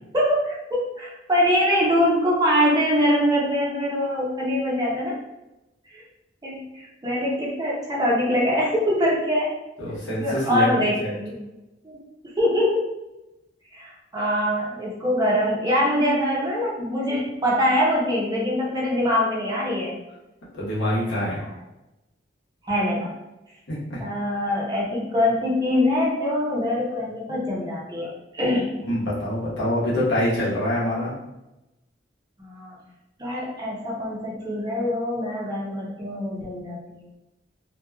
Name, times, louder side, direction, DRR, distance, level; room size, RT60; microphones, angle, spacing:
voice 1, 0.1-5.1 5.9-6.0 6.4-9.5 10.2-11.3 11.8-11.9 12.4-12.8 13.7-20.0 21.2-21.5 22.7-23.1 24.0-28.7 32.4-32.8 33.2-37.0, left 1 dB, 20° right, -4 dB, 0.6 m, -23 dB
voice 2, 9.8-10.7 11.0-11.1 20.5-21.4 23.7-24.0 28.9-31.1, left 1 dB, 75° left, -7 dB, 1.0 m, -25 dB
2.9 x 2.2 x 2.2 m, 0.96 s
head